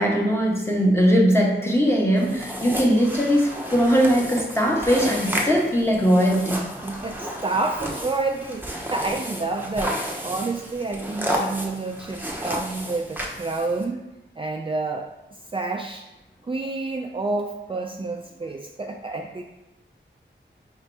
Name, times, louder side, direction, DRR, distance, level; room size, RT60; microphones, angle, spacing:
voice 1, 0.0-6.6, equal, 10° left, -2 dB, 1.1 m, -20 dB
sound 1, 2.2-13.8, equal, 10° right, 0.8 m, -32 dB
voice 2, 6.8-14.0 14.4-15.1 15.5-16.1 16.4-19.4, right 3 dB, 25° right, 2 dB, 0.3 m, -29 dB
5.0 x 2.8 x 3.4 m, 1.0 s
cardioid pair, 40°, 20 cm